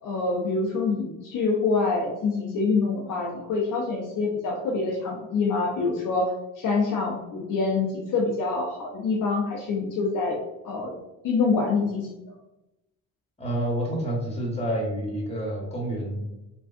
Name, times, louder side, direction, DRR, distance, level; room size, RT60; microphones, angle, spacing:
voice 1, 0.0-6.3 6.6-10.4 10.6-10.9 11.2-12.1, left 4 dB, 50° left, -2 dB, 0.7 m, -26 dB
voice 2, 13.4-16.4, right 1 dB, 15° left, -2 dB, 1.4 m, -29 dB
3.5 x 2.3 x 2.5 m, 0.93 s
hypercardioid pair, 60°, 41 cm